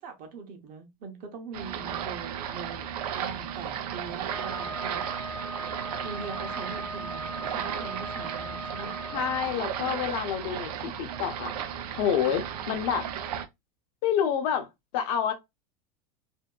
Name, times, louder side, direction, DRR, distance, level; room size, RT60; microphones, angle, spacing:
voice 1, 0.0-5.1 6.0-8.9, right 5 dB, 45° right, 0.8 m, -42 dB
sound 1, 1.5-13.5, right 9 dB, 85° right, 0.5 m, -35 dB
Wind instrument woodwind instrument, 4.3-9.4, right 1 dB, 5° left, 0.5 m, -39 dB
voice 2, 9.1-11.5 11.9-13.1 14.0-14.7 14.9-15.3, left 8 dB, 60° left, 0.7 m, -28 dB
2.7 x 2.2 x 2.3 m
supercardioid pair, 125°, 19 cm